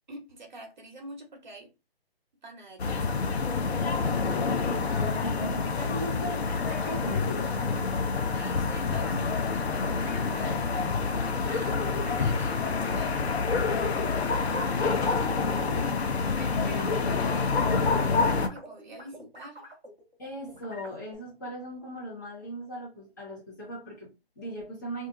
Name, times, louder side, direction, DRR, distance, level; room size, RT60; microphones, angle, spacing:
voice 1, 0.1-1.7 2.4-3.9 7.6-8.0 8.3-10.8 11.2-13.6 16.4-19.6, right 1 dB, 45° right, 1.0 m, -46 dB
sound 1, 2.8-18.5, left 4 dB, 90° left, 0.7 m, -27 dB
voice 2, 4.4-7.6 12.2-12.3 14.4-16.0 16.3-16.9 20.2-25.1, equal, 20° left, 0.9 m, -39 dB
sound 2, 6.5-7.3 7.5-7.8 8.3-9.5 9.8-15.6 16.0-20.2 20.5-21.1, equal, ahead, 0.6 m, -48 dB
2.7 x 2.5 x 3.5 m
hypercardioid pair, 175°, 31 cm